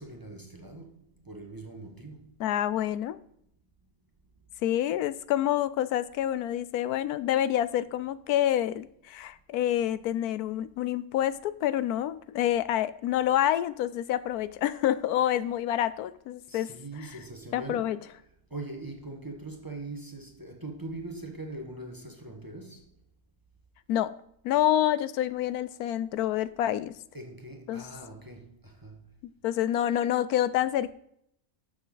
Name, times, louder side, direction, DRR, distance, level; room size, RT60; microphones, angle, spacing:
voice 1, 0.0-2.3 16.5-18.0 18.5-22.9 27.1-29.0, right 2 dB, 15° right, 1.2 m, -42 dB
voice 2, 2.4-3.2 4.6-16.7 17.5-18.0 23.9-24.1 24.4-26.9 27.7-27.9 29.2-30.9, left 11 dB, 85° left, 1.1 m, -27 dB
12.5 x 7.1 x 3.9 m
omnidirectional pair, 1.6 m